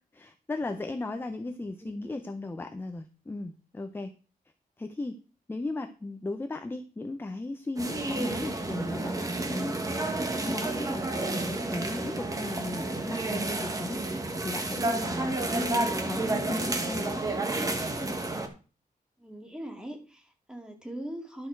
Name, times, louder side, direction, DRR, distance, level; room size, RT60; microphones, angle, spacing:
voice 1, 0.1-4.1 4.8-5.2 5.5-9.8 10.4-17.2, left 2 dB, 15° left, 7 dB, 0.6 m, -36 dB
sound 1, 7.8-18.5, right 2 dB, 20° right, 1.3 m, -30 dB
voice 2, 19.2-21.5, right 1 dB, 5° right, 2 dB, 2.0 m, -40 dB
11.5 x 6.6 x 4.6 m, 0.36 s
wide cardioid pair, 180°, 15 cm